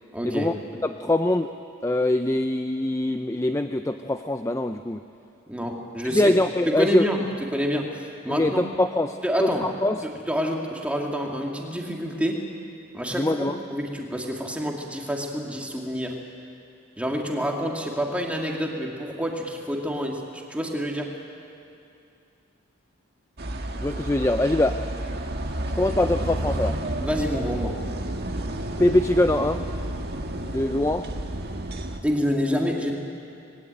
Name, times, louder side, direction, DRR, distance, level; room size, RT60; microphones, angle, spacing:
voice 1, 0.1-0.5 5.5-6.3 6.6-8.7 9.2-9.7 10.0-12.5 12.9-16.2 17.0-21.2 27.0-27.8 32.0-32.9, equal, 5° right, 0 dB, 2.4 m, -28 dB
voice 2, 0.8-1.5 1.8-5.0 6.1-7.0 8.4-9.5 9.8-10.0 13.2-13.5 23.8-24.8 25.7-26.8 28.8-29.6 30.4-31.1, left 1 dB, 15° left, 8 dB, 0.5 m, -23 dB
sound 1, 23.4-32.0, right 1 dB, 50° right, 1.7 m, -30 dB
25.5 x 20.5 x 9.1 m, 2.6 s
head